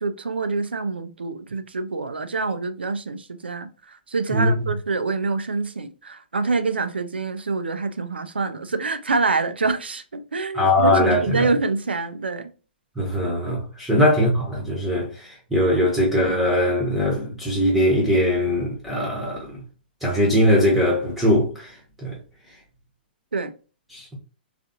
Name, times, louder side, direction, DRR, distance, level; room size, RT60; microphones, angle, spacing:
voice 1, 0.0-12.5 13.9-14.0 23.3-23.5, right 3 dB, 80° right, 0.4 m, -26 dB
voice 2, 4.3-4.7 10.5-11.5 13.0-19.6 20.0-21.8 22.0-22.2 23.9-24.1, left 1 dB, ahead, 0.9 m, -21 dB
3.3 x 2.5 x 2.7 m
figure-of-eight pair, 115°, 6 cm